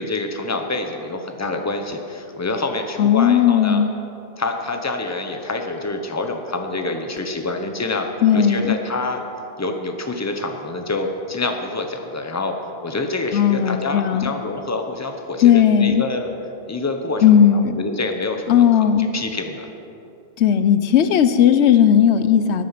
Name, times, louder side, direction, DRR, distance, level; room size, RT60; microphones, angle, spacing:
voice 1, 0.0-3.8 4.4-9.2 9.6-12.5 12.8-16.3 16.7-17.2 17.5-19.7, left 2 dB, 15° left, 4 dB, 0.9 m, -26 dB
voice 2, 3.0-3.9 8.2-8.8 13.3-14.3 15.4-16.0 17.2-17.8 18.5-19.1 20.4-22.6, left 9 dB, 90° left, 11 dB, 0.9 m, -16 dB
13.0 x 9.3 x 5.9 m, 2.7 s
omnidirectional pair, 1.1 m